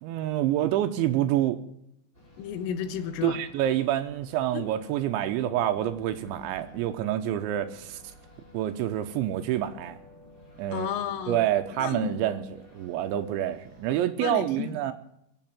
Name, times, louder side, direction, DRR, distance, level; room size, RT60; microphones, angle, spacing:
voice 1, 0.0-1.6 3.2-8.0 8.5-10.0 10.6-10.9 11.3-14.9, right 12 dB, 80° right, 9 dB, 3.0 m, -27 dB
sound 1, 2.1-13.9, left 1 dB, 10° left, 3.7 m, -53 dB
voice 2, 2.4-3.4 4.5-4.6 10.7-11.4 11.8-12.1 14.2-14.8, left 9 dB, 85° left, 9 dB, 4.1 m, -32 dB
23.5 x 8.0 x 7.4 m, 0.76 s
omnidirectional pair, 5.7 m